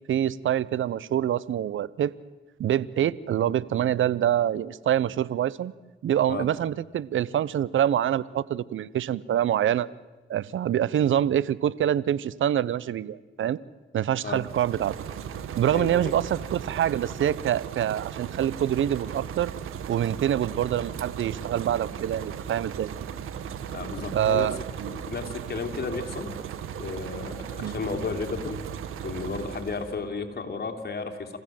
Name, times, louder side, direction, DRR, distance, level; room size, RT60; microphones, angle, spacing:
voice 1, 0.0-2.1 2.6-5.7 6.0-9.9 10.3-13.6 13.9-14.9 15.5-19.5 19.9-22.9 24.1-24.9 27.6-27.7, right 10 dB, 70° right, 21 dB, 0.8 m, -25 dB
sound 1, 14.2-30.0, right 8 dB, 85° right, 1.5 m, -37 dB
voice 2, 15.7-16.1 23.7-24.6 24.9-26.3 26.8-28.6 29.0-31.4, left 4 dB, 50° left, 4 dB, 3.2 m, -33 dB
27.5 x 15.5 x 7.6 m, 1.2 s
cardioid pair, 60°, 21 cm